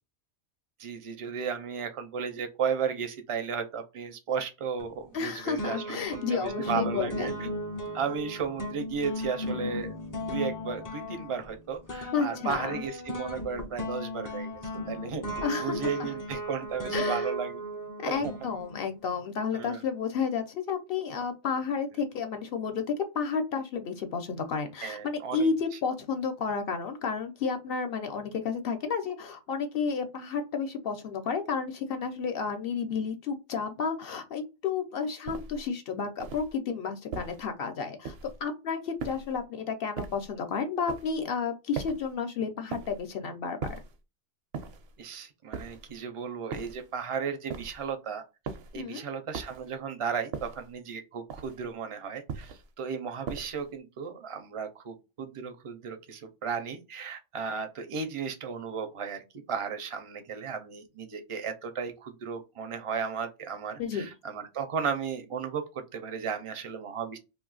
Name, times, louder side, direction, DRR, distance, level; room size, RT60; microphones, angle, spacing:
voice 1, 0.8-7.3 7.9-14.6 14.9-15.2 15.6-17.6 18.1-18.3 19.5-19.8 24.8-25.5 45.0-48.2 48.7-59.2 59.5-67.2, right 6 dB, 40° right, 7 dB, 0.4 m, -34 dB
sound 1, 4.8-5.3 5.6-19.0, equal, 35° left, 0.3 m, -36 dB
voice 2, 5.1-7.5 12.1-12.8 15.4-16.1 16.9-17.2 18.0-38.1 38.4-43.7 48.7-49.0 63.8-64.1, left 5 dB, 65° left, 6 dB, 0.7 m, -31 dB
sound 2, 35.3-35.7 36.2-36.6 37.1-37.5 38.0-38.4 39.0-39.4 40.0-40.3 40.9-41.2 41.8-42.1 42.7-43.1 43.6-44.0 44.5-44.9 45.5-45.9 46.5-46.9 47.5-47.9 48.5-48.8 49.3-49.7 50.3-50.7 51.3-51.7 52.3-52.7 53.3-53.7, right 5 dB, 70° right, 0.8 m, -39 dB
2.6 x 2.3 x 3.8 m, 0.27 s
omnidirectional pair, 1.2 m